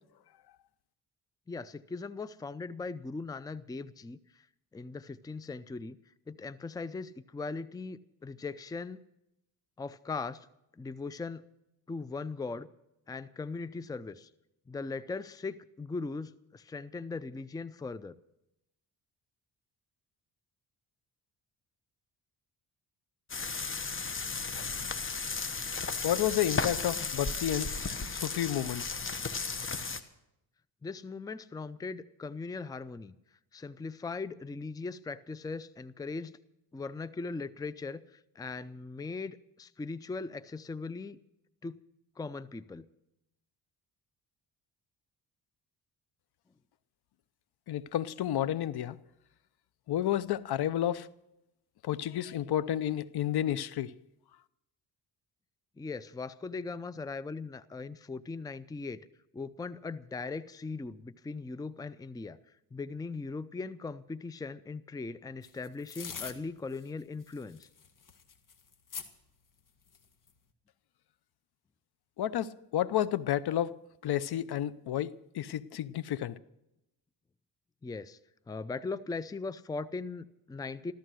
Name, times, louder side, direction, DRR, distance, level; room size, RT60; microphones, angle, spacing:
voice 1, 1.5-4.5 4.7-6.0 6.3-9.0 9.8-10.5 10.7-11.4 11.9-12.7 13.1-14.3 14.7-18.2 30.8-33.1 33.5-36.4 36.7-41.2 41.6-41.8 42.2-42.9 55.8-59.0 59.3-62.4 62.7-67.7 77.8-78.2 78.5-80.9, left 4 dB, 10° left, 0.5 m, -39 dB
sound 1, 23.3-30.0, left 4 dB, 30° left, 1.3 m, -34 dB
voice 2, 26.0-28.9 47.7-49.0 49.9-51.1 51.8-53.9 72.2-73.8 74.0-76.4, left 11 dB, 65° left, 0.7 m, -31 dB
sound 2, 65.4-66.4 66.7-66.9 67.2-69.1 69.9-70.3, left 6 dB, 50° left, 1.7 m, -43 dB
14.0 x 14.0 x 6.3 m
cardioid pair, 90°, 42 cm